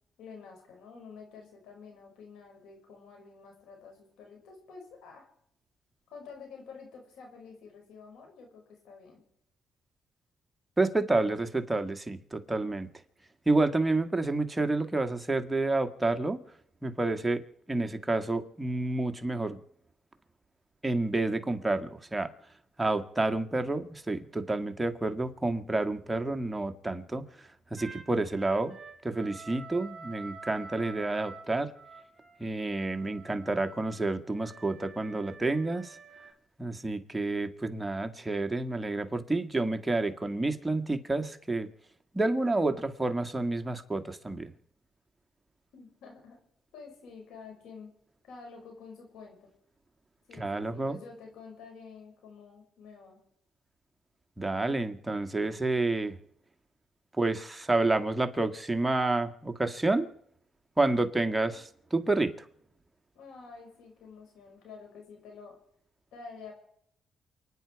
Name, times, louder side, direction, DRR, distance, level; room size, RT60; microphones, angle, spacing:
voice 1, 0.2-5.3 6.1-9.2 45.7-46.4 46.7-47.9 48.2-49.5 50.3-53.2 63.1-65.6 66.1-66.5, left 5 dB, 85° left, 5.7 m, -49 dB
voice 2, 10.8-12.9 13.5-16.4 16.8-19.6 20.8-22.3 22.8-28.8 29.0-31.7 32.4-36.0 36.6-41.7 42.1-44.5 50.4-51.0 54.4-56.2 57.2-60.1 60.8-62.5, right 2 dB, 10° right, 1.7 m, -29 dB
sound 1, 27.8-36.3, right 4 dB, 40° right, 2.7 m, -48 dB
29.0 x 9.9 x 4.7 m
cardioid pair, 90°, 0 cm